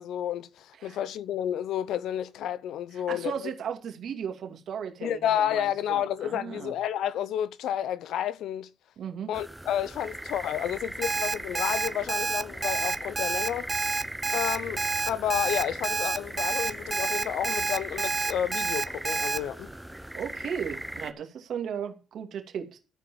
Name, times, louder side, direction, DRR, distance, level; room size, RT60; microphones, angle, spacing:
voice 1, 0.0-3.5 5.0-8.7 9.3-13.7 14.3-19.7, left 10 dB, 80° left, 0.6 m, -31 dB
voice 2, 3.1-6.7 9.0-9.3 20.1-22.8, right 8 dB, 65° right, 2.4 m, -36 dB
sound 1, 9.3-21.1, right 1 dB, 5° right, 1.0 m, -39 dB
Alarm, 11.0-19.4, right 4 dB, 25° right, 0.7 m, -28 dB
14.0 x 4.7 x 7.6 m
cardioid pair, 90°, 0 cm